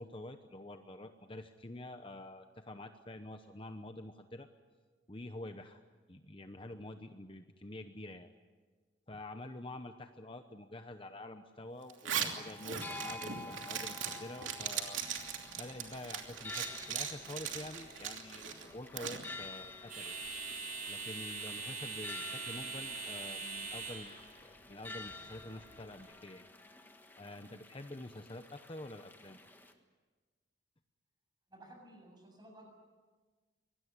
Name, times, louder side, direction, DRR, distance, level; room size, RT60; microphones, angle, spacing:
voice 1, 0.0-4.5 5.1-5.8 6.1-8.3 9.1-15.0 15.6-20.2 20.9-26.5 27.2-29.4, left 1 dB, 25° left, 8 dB, 0.9 m, -47 dB
Zipper (clothing), 11.9-19.3, right 8 dB, 75° right, 2.9 m, -39 dB
sound 1, 12.3-29.7, left 2 dB, 10° left, 1.6 m, -50 dB
sound 2, 14.9-26.1, right 4 dB, 40° right, 6.3 m, -45 dB
voice 2, 31.5-32.7, right 1 dB, 20° right, 2 dB, 7.6 m, -55 dB
24.5 x 19.0 x 9.6 m, 1.4 s
head